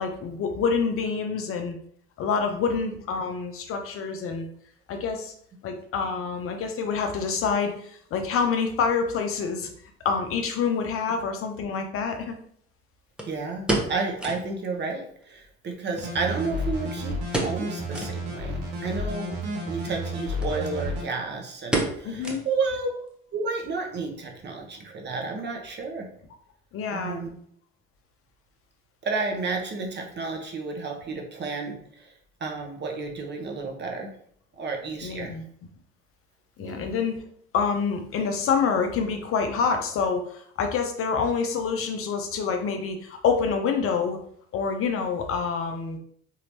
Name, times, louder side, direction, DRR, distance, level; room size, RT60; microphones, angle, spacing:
voice 1, 0.0-1.8 2.2-4.5 4.9-5.3 5.6-9.7 10.0-12.4 22.0-22.4 26.7-27.2 35.0-35.4 36.6-37.2 37.5-44.2 44.5-46.0, left 5 dB, 40° left, 5 dB, 0.6 m, -27 dB
sound 1, 11.1-11.2 13.2-14.5 14.8-14.9 15.2-15.3 16.0-16.8 17.3-17.7 17.9-18.2 18.7-18.8 19.7-20.0 20.4-20.5 20.8-21.2 21.7-22.8 23.1-23.2 23.8-24.1 24.4-24.5, right 2 dB, 5° right, 0.8 m, -30 dB
voice 2, 13.3-19.4 19.6-22.9 23.3-26.1 26.9-27.3 29.0-32.1 32.4-34.1 34.6-35.3 36.6-36.9, right 4 dB, 30° right, 2 dB, 0.9 m, -31 dB
sound 2, 16.0-21.0, equal, 60° right, 1.1 m, -31 dB
4.3 x 2.8 x 2.6 m, 0.63 s
figure-of-eight pair, 55°, 33 cm